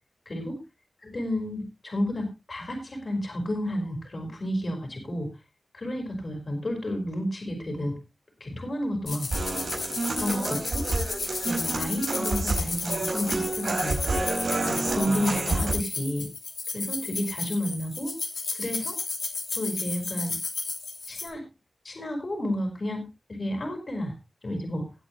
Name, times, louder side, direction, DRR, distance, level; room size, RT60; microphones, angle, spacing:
voice 1, 1.0-5.3 5.7-7.9 8.4-9.6 10.2-10.9 11.4-14.2 14.6-16.3 16.7-18.1 18.5-19.0 19.5-20.3 21.1-21.4 21.8-24.1 24.4-24.8, left 1 dB, 55° left, 3 dB, 4.5 m, -31 dB
sound 1, 9.1-21.3, left 4 dB, 85° left, 2.9 m, -33 dB
Human voice / Acoustic guitar, 9.3-15.7, right 2 dB, 85° right, 4.8 m, -29 dB
19.0 x 8.3 x 3.0 m, 0.26 s
wide cardioid pair, 65°, 0 cm